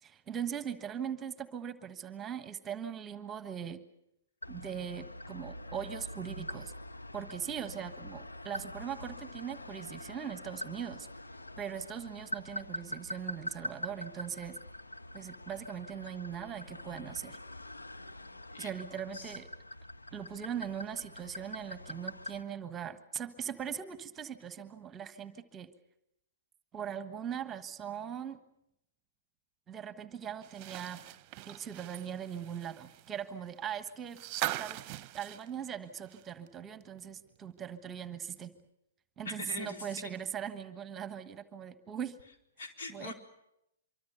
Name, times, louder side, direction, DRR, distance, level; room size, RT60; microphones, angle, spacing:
voice 1, 0.0-3.8 4.5-6.7 7.1-11.1 11.6-14.6 15.1-17.4 18.6-19.5 20.1-25.7 26.7-28.4 29.7-31.0 31.4-34.2 34.6-34.8 35.1-38.5 39.2-42.2 42.9-43.1, right 8 dB, 20° right, 11 dB, 1.3 m, -40 dB
sound 1, 4.4-22.4, left 1 dB, 90° left, 1.4 m, -44 dB
sound 2, 30.4-36.5 36.8-36.9 38.3-38.4, right 15 dB, 35° right, 0.9 m, -41 dB
voice 2, 39.2-40.1 42.6-43.1, left 3 dB, 65° left, 3 dB, 4.5 m, -42 dB
25.0 x 24.5 x 6.8 m, 0.83 s
figure-of-eight pair, 120°, 0 cm